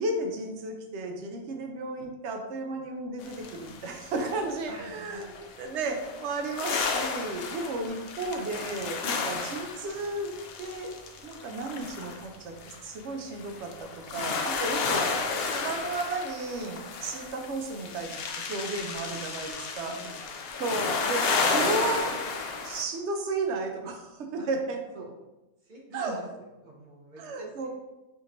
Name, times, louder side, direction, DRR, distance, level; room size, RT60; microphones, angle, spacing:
voice 1, 0.0-5.3 5.6-10.3 10.6-10.9 11.2-20.0 20.6-22.1 22.6-24.8 25.9-26.2 27.2-27.7, right 2 dB, 65° right, 3 dB, 0.8 m, -33 dB
sound 1, 3.2-4.5 5.2-22.8, left 4 dB, 65° left, 0.6 m, -32 dB
voice 2, 4.7-5.5 9.2-9.6 14.3-14.9 16.9-17.3 18.7-19.2 19.8-20.6 24.3-24.5 24.9-25.0 25.6-27.7, right 1 dB, 40° right, -3 dB, 0.9 m, -49 dB
5.0 x 3.0 x 2.6 m, 1.0 s
omnidirectional pair, 1.4 m